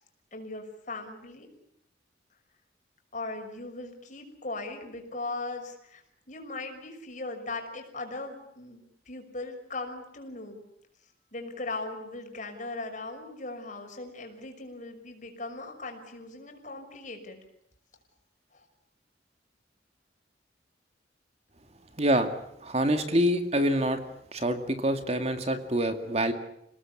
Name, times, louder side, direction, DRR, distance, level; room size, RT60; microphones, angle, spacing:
voice 1, 0.3-1.5 3.1-6.0 6.3-8.8 9.1-10.6 11.3-17.4 18.5-18.6, left 2 dB, 45° left, 4 dB, 6.0 m, -38 dB
voice 2, 22.0-22.4 22.6-24.0 24.3-26.3, right 1 dB, 35° right, 7 dB, 2.2 m, -26 dB
30.0 x 19.0 x 8.6 m, 0.77 s
head